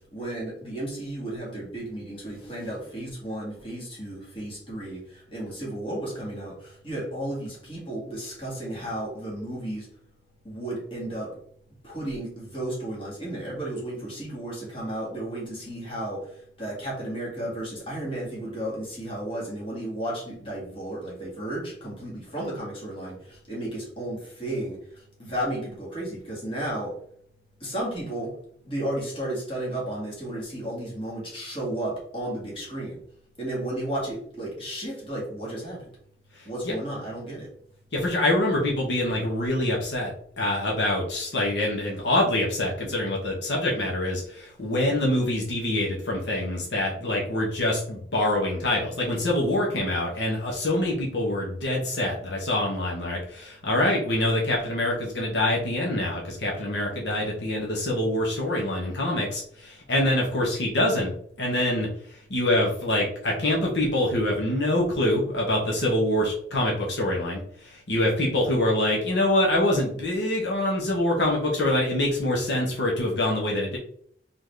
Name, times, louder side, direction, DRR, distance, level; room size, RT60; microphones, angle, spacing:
voice 1, 0.1-5.0 5.3-9.9 10.4-11.4 11.8-16.3 16.6-23.2 23.5-24.8 25.2-27.0 27.6-28.3 28.6-33.0 33.4-35.8 36.5-37.5, right 1 dB, 30° left, -5 dB, 2.1 m, -33 dB
voice 2, 36.4-36.7 37.9-61.1 61.4-73.8, left 1 dB, 80° left, -2 dB, 1.3 m, -25 dB
4.0 x 3.9 x 3.3 m, 0.63 s
head